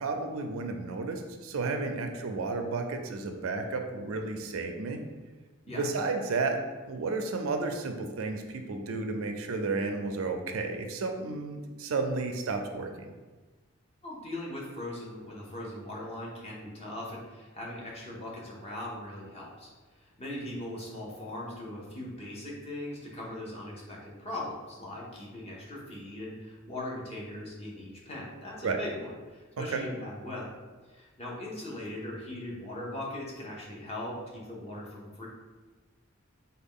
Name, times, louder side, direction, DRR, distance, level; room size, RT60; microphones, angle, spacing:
voice 1, 0.0-5.0 5.7-6.6 6.9-13.1 28.6-28.8 29.7-29.8, right 3 dB, 85° right, 4 dB, 0.4 m, -32 dB
voice 2, 14.0-19.7 20.0-30.5 30.9-35.3, left 1 dB, 30° left, -4 dB, 0.8 m, -40 dB
3.7 x 2.3 x 3.6 m, 1.3 s
head